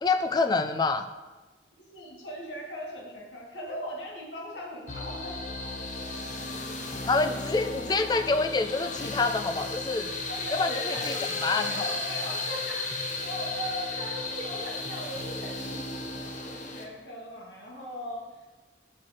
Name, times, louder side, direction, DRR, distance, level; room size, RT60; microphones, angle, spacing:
voice 1, 0.0-1.0 7.1-10.2 10.6-11.1 11.4-11.9, left 3 dB, 25° left, 9 dB, 0.3 m, -27 dB
voice 2, 1.9-5.6 10.3-18.5, equal, 90° left, -2 dB, 1.7 m, -39 dB
sound 1, 4.9-16.8, left 3 dB, 45° left, 0.8 m, -34 dB
5.7 x 4.5 x 6.2 m, 1.2 s
head